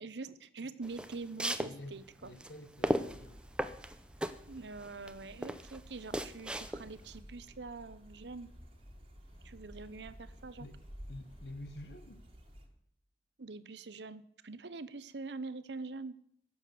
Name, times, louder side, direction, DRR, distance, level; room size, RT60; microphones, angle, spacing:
voice 1, 0.0-2.3 4.5-8.5 9.4-10.7 13.4-16.2, right 3 dB, 80° right, 0.8 m, -44 dB
sound 1, 0.8-7.1, equal, 5° right, 0.6 m, -36 dB
voice 2, 1.6-3.4 10.6-10.8 11.1-12.2, left 1 dB, 70° left, 1.1 m, -48 dB
sound 2, 2.8-12.7, equal, 30° right, 1.9 m, -54 dB
Accelerating revving vroom, 6.4-12.7, equal, 30° left, 7.0 m, -66 dB
16.5 x 7.3 x 6.7 m
head